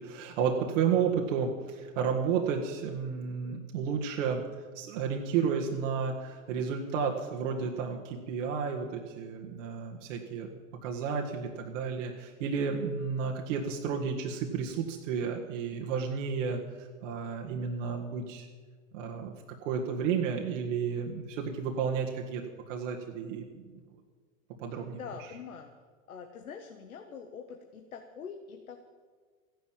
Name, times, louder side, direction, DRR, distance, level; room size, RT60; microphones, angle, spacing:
voice 1, 0.0-4.4 4.8-10.5 10.8-18.5 18.9-19.3 19.6-23.6 24.6-25.0, right 6 dB, 60° right, 1 dB, 1.9 m, -32 dB
voice 2, 24.7-25.7 26.1-28.9, left 6 dB, 85° left, 5 dB, 1.4 m, -44 dB
15.0 x 10.5 x 7.6 m, 1.5 s
hypercardioid pair, 105°, 41 cm